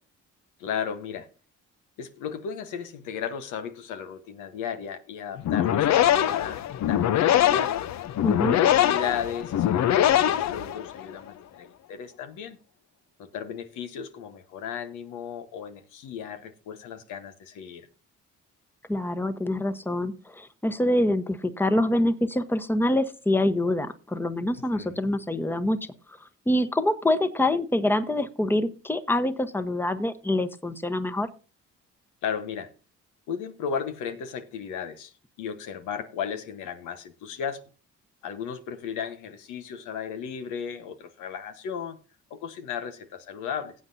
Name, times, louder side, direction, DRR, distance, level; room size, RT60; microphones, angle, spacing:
voice 1, 0.6-1.3 2.0-7.8 8.3-12.6 13.2-17.9 24.7-25.0 32.2-32.7 33.3-35.1 35.4-37.6 38.2-42.0 42.3-43.7, left 7 dB, 90° left, 1.2 m, -35 dB
sound 1, 5.4-11.1, left 11 dB, 65° left, 0.7 m, -23 dB
voice 2, 8.2-8.6 18.9-25.8 26.5-31.3, left 1 dB, 5° left, 1.0 m, -25 dB
18.0 x 8.0 x 2.7 m
cardioid pair, 75°, 30 cm